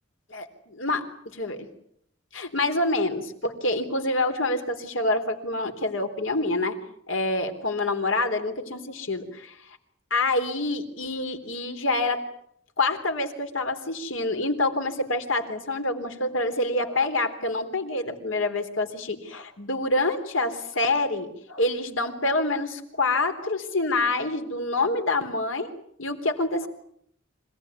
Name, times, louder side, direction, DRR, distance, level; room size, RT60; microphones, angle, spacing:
voice 1, 0.3-1.7 2.3-6.8 7.1-9.8 10.1-12.2 12.8-25.7 26.0-26.7, left 2 dB, 85° left, 7 dB, 3.7 m, -27 dB
26.0 x 18.0 x 9.7 m, 0.71 s
head